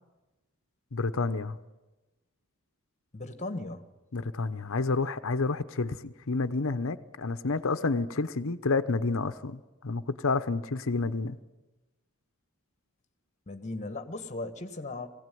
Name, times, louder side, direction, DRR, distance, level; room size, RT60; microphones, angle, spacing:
voice 1, 0.9-1.6 4.1-11.4, left 3 dB, 65° left, 0.9 m, -29 dB
voice 2, 3.1-3.9 13.5-15.1, left 2 dB, 35° left, 1.6 m, -37 dB
21.0 x 16.5 x 9.3 m
head